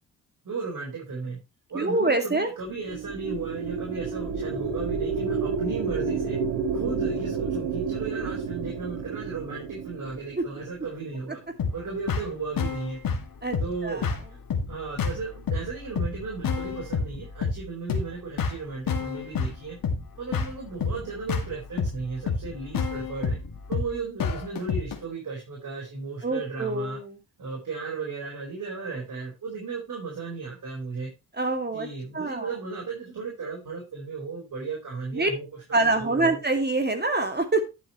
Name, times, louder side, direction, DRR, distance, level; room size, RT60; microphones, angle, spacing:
voice 1, 0.4-1.4 1.7-6.4 6.7-11.4 11.7-13.0 13.6-14.4 14.7-19.8 20.2-23.4 23.7-27.0 27.4-31.1 31.7-36.4, right 4 dB, 55° right, -2 dB, 4.6 m, -35 dB
voice 2, 1.7-2.5 10.4-10.5 13.4-13.6 13.8-14.1 26.2-27.2 31.4-31.9 32.1-32.5 35.1-35.3 35.7-37.6, right 2 dB, 25° right, 6 dB, 2.3 m, -25 dB
sound 1, 2.6-11.2, right 5 dB, 85° right, 1.8 m, -30 dB
sound 2, 11.6-25.0, left 5 dB, 60° left, 2.1 m, -30 dB
11.0 x 9.3 x 3.1 m, 0.26 s
supercardioid pair, 50°, 38 cm